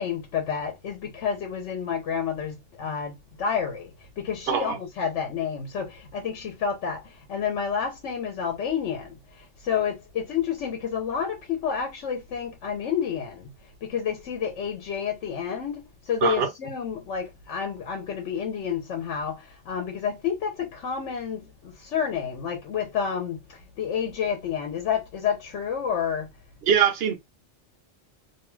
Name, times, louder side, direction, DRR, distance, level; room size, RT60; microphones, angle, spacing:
voice 1, 0.0-13.5 13.8-26.3, left 7 dB, 80° left, 1.0 m, -30 dB
voice 2, 4.5-4.8 16.2-16.5 26.7-27.2, right 8 dB, 65° right, 0.8 m, -22 dB
2.6 x 2.2 x 3.1 m
omnidirectional pair, 1.2 m